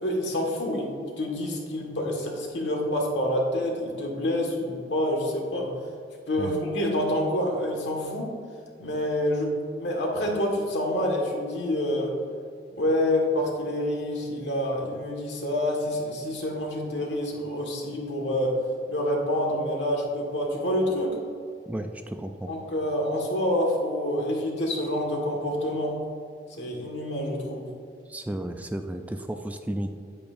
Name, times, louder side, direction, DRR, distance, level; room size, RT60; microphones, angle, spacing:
voice 1, 0.0-5.7 6.3-8.3 8.8-12.2 12.8-18.6 18.9-21.2 22.5-26.0 26.6-27.7, left 1 dB, 80° left, 0 dB, 1.6 m, -27 dB
voice 2, 21.7-22.5 28.1-30.0, right 1 dB, 10° right, 6 dB, 0.3 m, -33 dB
8.8 x 8.5 x 2.6 m, 2.3 s
head